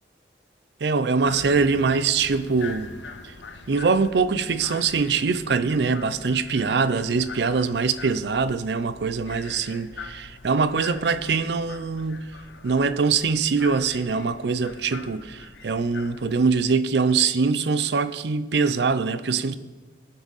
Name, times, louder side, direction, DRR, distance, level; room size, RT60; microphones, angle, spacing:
voice 1, 0.8-2.9 3.2-3.3 3.7-12.3 12.6-19.5, right 4 dB, 70° right, 0.5 m, -23 dB
sound 1, 1.2-16.6, left 4 dB, 85° left, 0.8 m, -43 dB
18.5 x 6.2 x 4.1 m
head